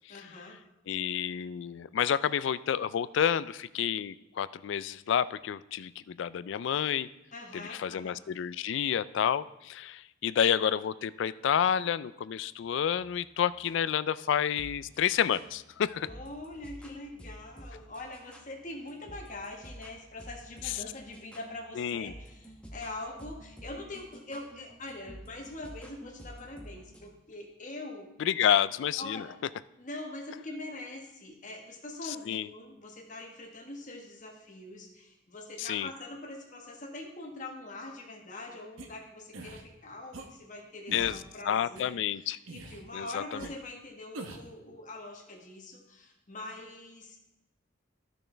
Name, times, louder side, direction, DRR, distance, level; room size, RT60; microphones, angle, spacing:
voice 1, 0.1-0.6 7.3-8.2 16.0-28.1 29.0-29.3 29.8-41.9 42.2-47.2, left 2 dB, 40° left, 1 dB, 1.4 m, -43 dB
voice 2, 0.9-7.1 7.5-16.1 20.6-20.8 21.8-22.1 28.2-29.3 32.0-32.5 35.6-35.9 40.9-42.4 42.9-43.2, left 9 dB, 65° left, 17 dB, 0.3 m, -29 dB
sound 1, 12.6-27.1, equal, 5° left, 0.9 m, -51 dB
sound 2, 38.8-38.9 39.3-39.6 40.1-40.3 40.9-41.2 41.8-41.9 42.5-42.8 43.4-43.5 44.1-44.5, right 2 dB, 90° right, 0.9 m, -43 dB
12.5 x 6.3 x 3.3 m, 0.88 s
head